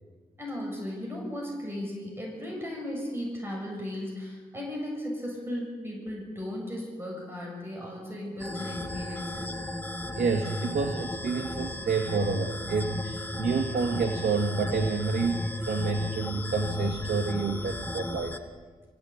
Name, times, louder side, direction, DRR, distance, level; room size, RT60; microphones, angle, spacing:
voice 1, 0.4-9.6, left 1 dB, 15° right, -2 dB, 7.6 m, -36 dB
sound 1, 8.4-18.4, left 1 dB, 10° left, 1.7 m, -36 dB
voice 2, 10.2-18.3, right 4 dB, 90° right, 2 dB, 2.1 m, -28 dB
24.5 x 16.5 x 8.8 m, 1.4 s
wide cardioid pair, 125°, 16 cm